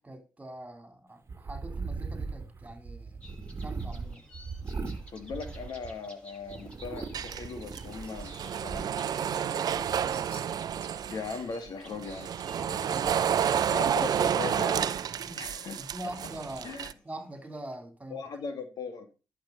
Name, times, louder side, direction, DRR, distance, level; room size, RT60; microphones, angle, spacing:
voice 1, 0.0-3.2 3.5-4.3 9.2-10.2 12.5-13.6 15.3-15.4 15.8-18.2, right 1 dB, 15° right, 3.9 m, -44 dB
sound 1, 1.3-6.1 6.5-8.9, right 4 dB, 35° right, 1.9 m, -39 dB
sound 2, 3.2-17.8, equal, 10° left, 7.9 m, -55 dB
voice 2, 5.1-8.9 11.1-12.3 13.7-14.9 15.4-15.8 16.6-16.9 18.1-19.1, left 4 dB, 55° left, 2.5 m, -38 dB
sound 3, 7.1-11.4 11.9-16.9, right 9 dB, 55° right, 0.7 m, -30 dB
12.0 x 7.1 x 5.6 m
supercardioid pair, 60°, 8 cm